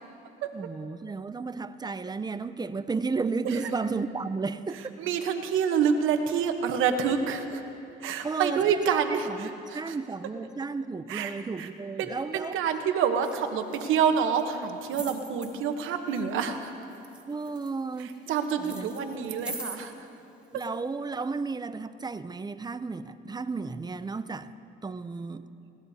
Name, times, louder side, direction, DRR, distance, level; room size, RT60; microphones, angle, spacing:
voice 1, 0.5-5.0 8.2-12.6 17.3-18.2 18.6-18.9 20.5-24.5 24.8-25.5, right 4 dB, 20° right, 13 dB, 0.5 m, -33 dB
voice 2, 5.0-7.6 8.0-10.0 11.1-11.7 12.0-16.7 18.0-19.9, right 7 dB, 85° right, 7 dB, 1.0 m, -27 dB
sound 1, 13.2-13.4 13.7-14.4 14.9-15.5 16.1-16.6 16.9-18.3 18.6-19.8 20.6-20.7, right 2 dB, 5° right, 1.8 m, -41 dB
20.5 x 17.5 x 2.8 m, 2.7 s
cardioid pair, 90°, 20 cm